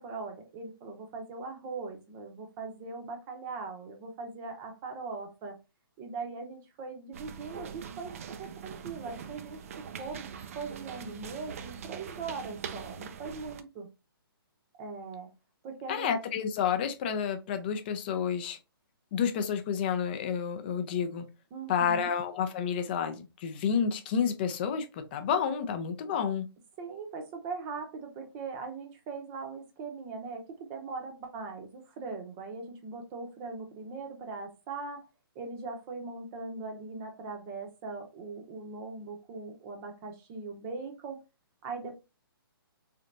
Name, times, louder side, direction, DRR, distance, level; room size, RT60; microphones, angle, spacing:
voice 1, 0.0-5.6 6.0-8.1 8.4-9.6 10.0-13.9 14.8-15.3 15.6-16.1 21.5-22.1 26.8-35.1 35.3-41.2 41.6-41.9, right 4 dB, 20° right, 4 dB, 0.8 m, -40 dB
sound 1, 7.1-13.6, right 7 dB, 35° right, 0.4 m, -43 dB
voice 2, 15.9-18.6 19.1-21.2 21.7-26.5, left 7 dB, 25° left, 8 dB, 0.5 m, -30 dB
3.9 x 3.3 x 2.6 m, 0.28 s
hypercardioid pair, 160°, 13 cm